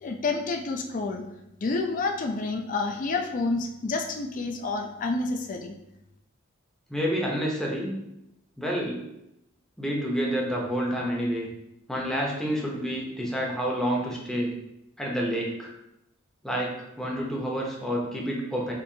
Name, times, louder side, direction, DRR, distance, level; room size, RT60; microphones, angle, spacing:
voice 1, 0.0-1.2 1.6-5.8, left 3 dB, 40° left, 4 dB, 0.4 m, -29 dB
voice 2, 6.9-8.0 8.6-9.0 9.8-11.5 11.9-14.5 15.0-15.7 16.4-18.7, equal, ahead, -3 dB, 0.6 m, -29 dB
4.4 x 2.4 x 2.7 m, 0.84 s
head